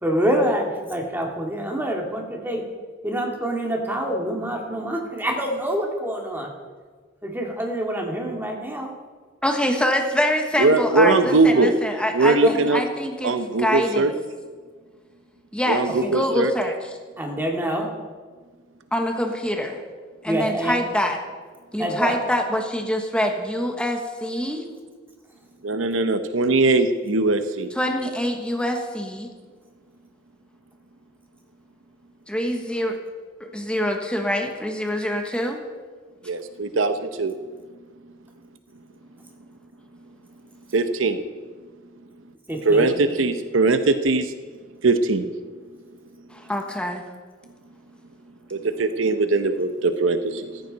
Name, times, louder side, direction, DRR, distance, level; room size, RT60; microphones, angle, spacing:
voice 1, 0.0-2.6 3.0-6.5 7.2-8.9 12.4-12.5 16.0-16.1 17.2-17.9 20.3-20.8 21.8-22.2 42.5-42.9, right 1 dB, 10° right, 0 dB, 2.4 m, -26 dB
voice 2, 9.4-13.3 13.6-14.1 15.5-16.9 18.9-19.8 20.2-21.2 21.7-24.6 27.7-29.3 32.3-33.0 33.5-35.6 46.3-47.0, equal, 5° left, 3 dB, 1.3 m, -25 dB
voice 3, 10.6-11.7 12.1-12.8 13.2-14.1 15.7-16.5 25.6-27.7 36.3-37.3 40.7-41.2 42.6-44.3 44.8-45.3 48.5-50.6, right 3 dB, 75° right, 9 dB, 0.9 m, -20 dB
15.0 x 14.5 x 4.2 m, 1.5 s
head